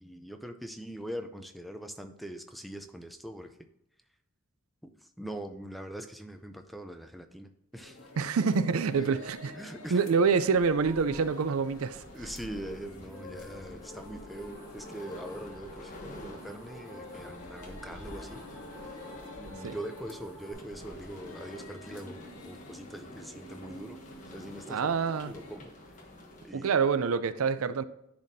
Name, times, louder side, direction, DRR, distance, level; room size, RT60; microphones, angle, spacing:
voice 1, 0.0-3.6 4.8-8.0 9.5-10.0 12.1-18.4 19.4-22.2 22.4-24.0 24.3-24.9 25.2-25.9 26.4-26.7, right 1 dB, ahead, 0.4 m, -42 dB
sound 1, 7.7-25.6, left 1 dB, 90° left, 1.3 m, -49 dB
voice 2, 8.2-9.5 9.9-12.0 19.6-19.8 24.7-25.3 26.5-27.8, right 5 dB, 80° right, 0.4 m, -26 dB
sound 2, 11.1-26.5, left 1 dB, 35° left, 1.5 m, -50 dB
sound 3, 13.1-20.5, left 2 dB, 15° left, 2.6 m, -49 dB
10.5 x 4.2 x 2.7 m
head